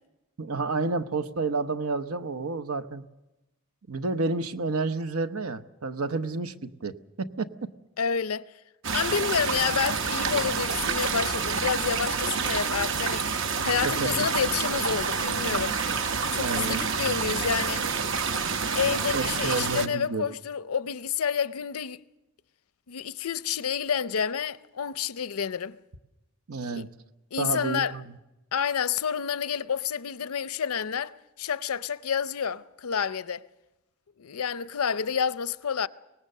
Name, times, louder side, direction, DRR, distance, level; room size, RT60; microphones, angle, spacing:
voice 1, 0.4-3.0 3.9-7.5 13.8-14.1 16.4-16.8 19.1-20.3 26.5-26.9 27.4-28.2, right 3 dB, 85° right, 0.9 m, -30 dB
voice 2, 8.0-8.5 8.9-13.3 13.6-15.8 16.3-17.8 18.7-22.0 22.9-25.8 26.7-26.9 27.3-28.0 28.5-33.4 34.2-35.9, left 7 dB, 85° left, 0.6 m, -29 dB
sound 1, 8.8-19.9, right 5 dB, 60° right, 0.9 m, -28 dB
24.0 x 18.5 x 6.6 m
head